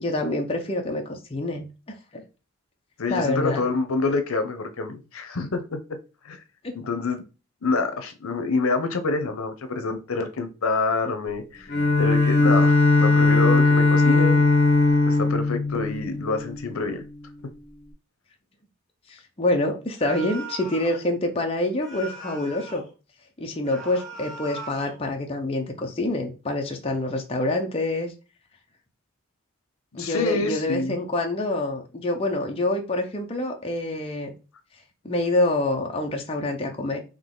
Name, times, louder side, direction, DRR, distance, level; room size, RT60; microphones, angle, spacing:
voice 1, 0.0-1.7 2.1-2.2 3.1-3.6 6.6-6.7 19.1-22.8 23.4-28.1 29.9-34.3 35.0-37.0, left 2 dB, 25° left, 0.6 m, -26 dB
voice 2, 3.0-5.8 6.2-6.4 6.7-7.2 7.6-11.7 12.0-14.4 15.1-17.0 29.9-31.0, left 3 dB, 80° left, 0.7 m, -27 dB
Bowed string instrument, 11.7-16.8, left 3 dB, 50° left, 1.0 m, -19 dB
sound 1, 20.0-21.0 21.8-22.9 23.6-25.0, right 2 dB, ahead, 1.0 m, -39 dB
3.8 x 2.9 x 3.8 m
head